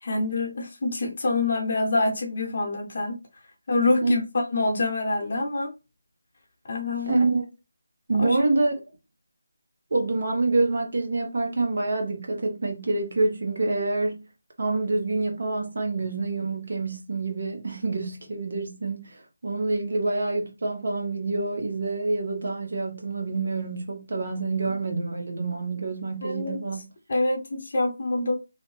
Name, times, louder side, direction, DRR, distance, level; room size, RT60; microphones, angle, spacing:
voice 1, 0.0-3.2 3.7-4.2 4.5-5.7 6.7-7.2 8.2-8.4 26.2-26.6 27.1-28.3, left 2 dB, 40° left, 0.9 m, -26 dB
voice 2, 7.1-7.4 8.1-8.7 9.9-14.2 14.6-26.8, right 3 dB, 55° right, 0.9 m, -27 dB
2.7 x 2.2 x 3.0 m
figure-of-eight pair, 170°, 0 cm